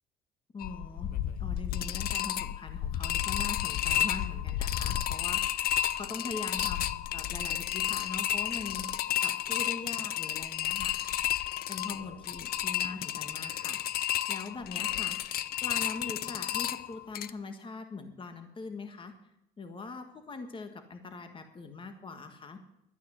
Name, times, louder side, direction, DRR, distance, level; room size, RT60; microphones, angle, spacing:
voice 1, 0.5-1.1 1.4-11.1 11.7-15.2 15.6-19.1 19.6-22.6, left 4 dB, 30° left, 7 dB, 1.6 m, -42 dB
sound 1, 0.6-17.3, left 12 dB, 65° left, 0.7 m, -32 dB
12.0 x 9.2 x 8.0 m, 0.80 s
cardioid pair, 110°, 17 cm